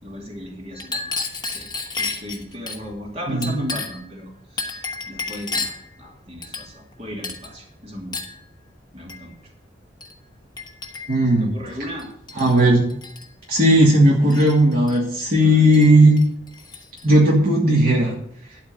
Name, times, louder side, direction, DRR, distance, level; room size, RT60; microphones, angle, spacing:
voice 1, 0.0-1.2 1.5-8.2 8.9-9.5 11.2-12.1 15.4-15.7, equal, 35° right, -1 dB, 2.7 m, -36 dB
Chink clink, 0.7-2.8 3.4-4.1 4.6-5.9 6.4-6.9 7.2-7.5 8.1-8.4 9.1-9.3 10.0-10.2 10.6-11.3 12.0-12.6 12.9-13.3 14.3-15.0 15.7-15.9 16.2-17.1, left 4 dB, 25° left, 1.1 m, -32 dB
voice 2, 3.3-3.6 11.1-11.5 12.4-12.9 13.5-16.2 17.0-18.1, right 1 dB, 55° right, -3 dB, 2.1 m, -16 dB
12.0 x 4.3 x 7.8 m, 0.68 s
head